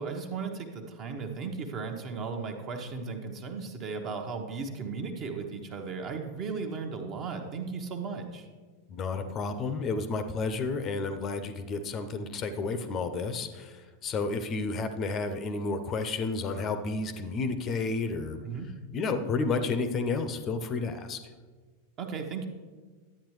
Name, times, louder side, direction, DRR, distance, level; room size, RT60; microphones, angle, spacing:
voice 1, 0.0-8.5 18.4-18.7 22.0-22.5, right 5 dB, 35° right, 4 dB, 1.0 m, -36 dB
voice 2, 8.9-18.4 18.9-21.2, left 4 dB, 30° left, 10 dB, 0.6 m, -31 dB
11.5 x 8.7 x 3.2 m, 1.4 s
figure-of-eight pair, 90°, 0 cm